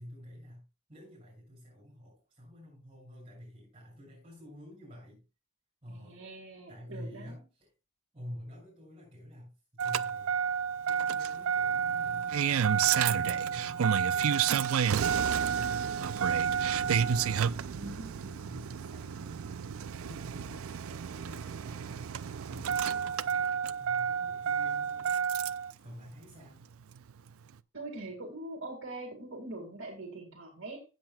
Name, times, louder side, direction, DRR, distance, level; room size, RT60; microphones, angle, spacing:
voice 1, 0.0-5.3 5.8-6.2 6.7-7.7 8.1-10.4 10.9-19.7 20.0-25.3 25.8-26.6, equal, 25° right, -5 dB, 6.7 m, -49 dB
voice 2, 5.9-7.4 17.8-18.4 27.7-30.8, right 2 dB, 60° right, 2 dB, 2.2 m, -43 dB
Engine starting, 9.8-25.7 27.0-27.1, right 7 dB, 80° right, 0.4 m, -30 dB
16.5 x 7.7 x 2.3 m, 0.32 s
head